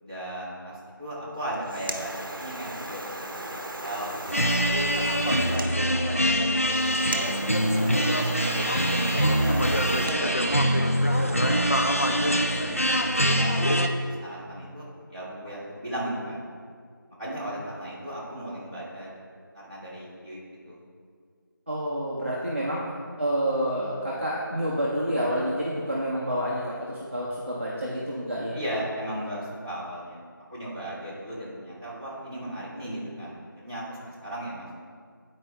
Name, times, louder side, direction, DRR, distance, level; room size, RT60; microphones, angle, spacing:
voice 1, 0.0-4.5 5.0-8.7 9.3-12.9 13.3-16.5 17.2-19.2 19.5-20.4 20.6-20.8 28.5-30.2 30.5-34.7, right 1 dB, 20° right, -13 dB, 1.5 m, -37 dB
sound 1, 1.4-10.2, right 1 dB, 65° right, 0.8 m, -37 dB
sound 2, 4.3-13.9, equal, 40° left, 0.4 m, -24 dB
voice 2, 21.7-22.8 23.2-28.6, equal, 35° right, -6 dB, 0.7 m, -28 dB
9.3 x 4.6 x 3.2 m, 2.1 s
figure-of-eight pair, 180°, 12 cm